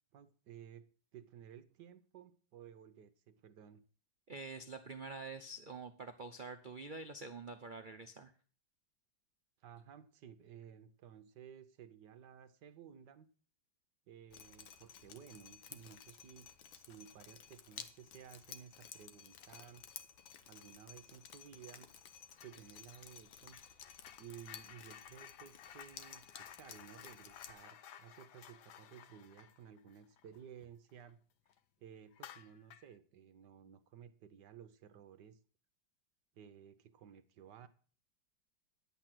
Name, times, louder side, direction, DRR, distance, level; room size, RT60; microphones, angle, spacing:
voice 1, 0.1-3.8 9.6-13.3 14.1-19.8 20.5-21.9 22.4-23.6 24.2-31.2 31.8-35.4 36.3-37.7, right 8 dB, 65° right, 1.3 m, -56 dB
voice 2, 4.3-8.3, right 3 dB, 90° right, 0.4 m, -47 dB
Drip, 14.3-27.5, left 8 dB, 80° left, 1.7 m, -55 dB
sound 1, 22.3-22.7 22.9-31.1 31.5-31.6 32.1-33.0, left 9 dB, 65° left, 1.2 m, -56 dB
11.0 x 8.3 x 6.0 m
omnidirectional pair, 2.1 m